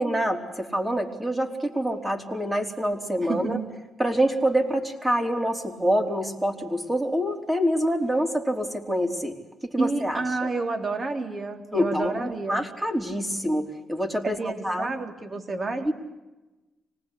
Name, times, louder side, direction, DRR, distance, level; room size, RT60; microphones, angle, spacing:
voice 1, 0.0-3.6 4.0-9.4 9.6-10.5 11.7-14.4 14.6-14.9 15.8-15.9, equal, 15° right, 4 dB, 4.3 m, -26 dB
voice 2, 3.2-3.7 9.8-12.6 14.2-15.9, right 3 dB, 40° right, 6 dB, 3.5 m, -29 dB
25.5 x 20.0 x 8.5 m, 1.1 s
cardioid pair, 75°, 0 cm